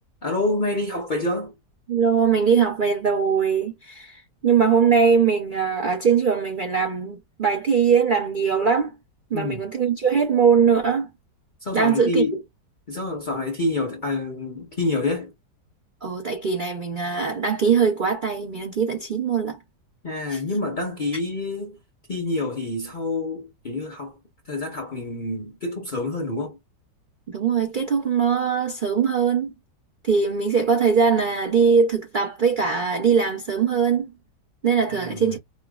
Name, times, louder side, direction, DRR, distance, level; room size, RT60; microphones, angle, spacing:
voice 1, 0.2-1.5 9.3-9.6 11.6-12.4 12.9-15.3 20.0-21.8 22.1-24.2 24.5-26.6 34.9-35.4, left 2 dB, 45° left, 0.6 m, -27 dB
voice 2, 1.9-8.9 9.3-11.1 11.7-12.2 16.0-19.6 20.3-20.4 27.3-29.5 30.0-34.1 34.6-35.4, right 6 dB, 80° right, 0.4 m, -21 dB
5.4 x 2.0 x 2.3 m
omnidirectional pair, 1.9 m